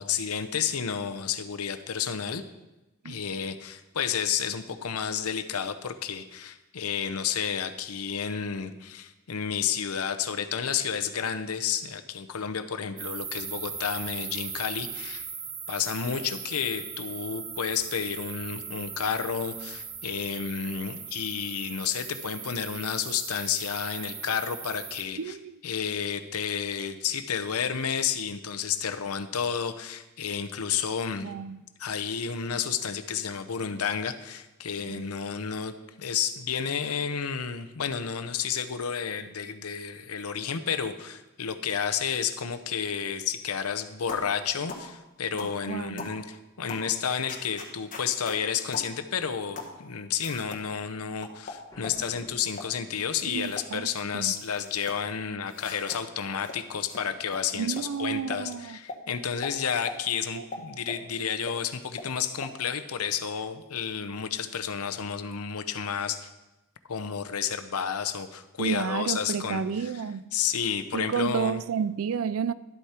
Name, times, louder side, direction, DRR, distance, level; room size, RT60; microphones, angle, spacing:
voice 1, 0.0-2.4 3.0-15.3 15.7-25.4 25.6-31.3 31.8-66.3 66.9-69.9 70.3-71.6, left 7 dB, 80° left, 0.7 m, -31 dB
sound 1, 13.0-25.0, right 6 dB, 45° right, 1.3 m, -39 dB
voice 2, 25.2-25.5 31.2-31.6 34.9-35.0 45.7-46.1 53.3-53.9 54.1-54.3 57.5-58.8 60.4-60.5 68.6-70.3 70.9-72.5, right 6 dB, 70° right, 0.4 m, -31 dB
sound 2, 44.1-44.3 44.7-44.9 45.4-45.6 46.0-46.2 46.7-46.9 47.3-48.4 48.7-48.9 49.6-49.8 50.2-50.6 51.2-52.0 52.5-52.7 53.2-53.7 54.0-55.0 55.5-56.0 56.4-56.6 56.9-57.0 57.3-57.4 57.8-57.9 58.3-58.4 58.9-59.0 59.4-59.5 59.9-60.0 60.5-61.0 61.5-61.6 62.0-62.1 62.4-62.5, left 3 dB, 40° left, 1.4 m, -40 dB
Boom, 51.7-53.5, left 1 dB, 15° left, 1.1 m, -51 dB
11.5 x 8.2 x 4.4 m
head